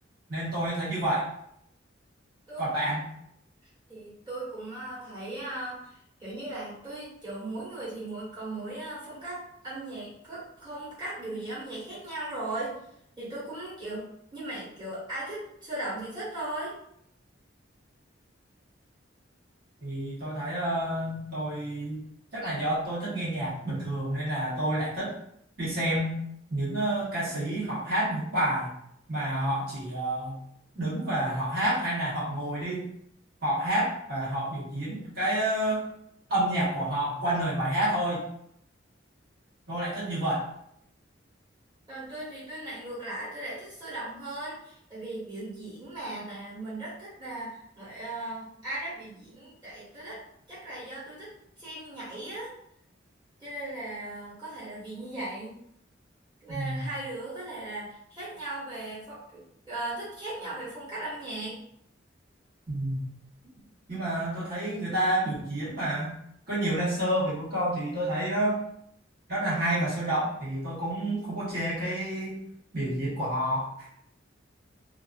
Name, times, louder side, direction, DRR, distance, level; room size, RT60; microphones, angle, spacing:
voice 1, 0.3-1.2 2.6-3.1 19.8-22.0 22.3-25.1 25.6-26.2 26.5-28.7 29.1-30.4 30.7-32.9 33.4-35.9 36.3-38.2 39.7-40.5 56.5-56.8 62.7-63.1 63.9-66.1 66.5-68.6 69.3-72.4 72.7-73.9, right 1 dB, 50° right, -9 dB, 1.3 m, -29 dB
voice 2, 3.9-12.8 13.2-16.7 41.9-50.2 50.5-51.3 51.6-52.5 53.4-55.6 56.4-61.6, right 2 dB, 20° right, -10 dB, 1.4 m, -38 dB
2.8 x 2.5 x 2.4 m, 0.72 s
head